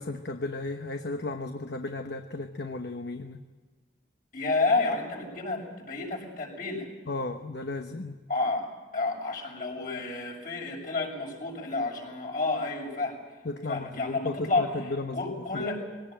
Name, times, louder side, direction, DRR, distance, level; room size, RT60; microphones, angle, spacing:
voice 1, 0.0-3.4 7.1-8.2 13.4-15.6, left 2 dB, 65° left, 6 dB, 1.1 m, -35 dB
voice 2, 4.3-6.9 8.3-8.7 8.9-13.2 13.7-15.8, left 3 dB, 50° left, -2 dB, 6.9 m, -30 dB
22.0 x 18.0 x 9.0 m, 1.4 s
head